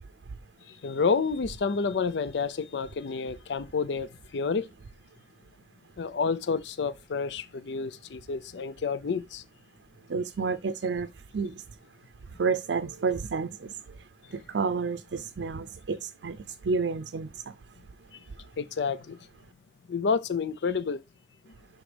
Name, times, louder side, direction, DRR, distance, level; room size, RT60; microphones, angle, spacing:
voice 1, 0.7-4.7 6.0-9.4 18.1-18.2 18.6-19.2 19.9-21.0, left 5 dB, 85° left, 0.5 m, -29 dB
voice 2, 10.1-11.6 12.4-13.8 14.3-17.6, right 5 dB, 90° right, 0.5 m, -30 dB
11.0 x 3.8 x 3.3 m
head